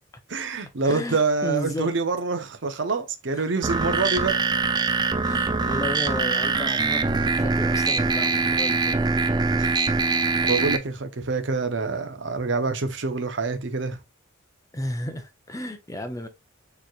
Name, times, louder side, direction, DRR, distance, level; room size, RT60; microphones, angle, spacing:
voice 1, 0.3-4.4 9.6-9.7 10.5-14.0, right 4 dB, 60° right, 0.7 m, -26 dB
voice 2, 0.8-1.9 3.3-3.5 5.2-9.0 14.7-16.3, left 1 dB, 15° left, 0.6 m, -33 dB
sound 1, 3.6-10.8, right 4 dB, 20° right, 0.4 m, -23 dB
6.9 x 3.1 x 2.3 m
head